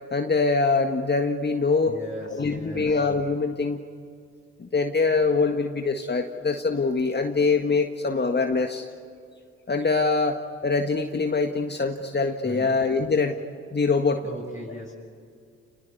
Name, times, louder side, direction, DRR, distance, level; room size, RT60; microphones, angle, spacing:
voice 1, 0.1-2.0 2.3-3.8 4.6-8.9 9.7-13.3 13.7-14.2, left 4 dB, 30° left, 5 dB, 1.8 m, -24 dB
voice 2, 1.9-2.9 12.4-12.8 14.2-14.9, equal, 10° right, -5 dB, 7.1 m, -38 dB
29.5 x 20.0 x 9.7 m, 2.2 s
hypercardioid pair, 45°, 33 cm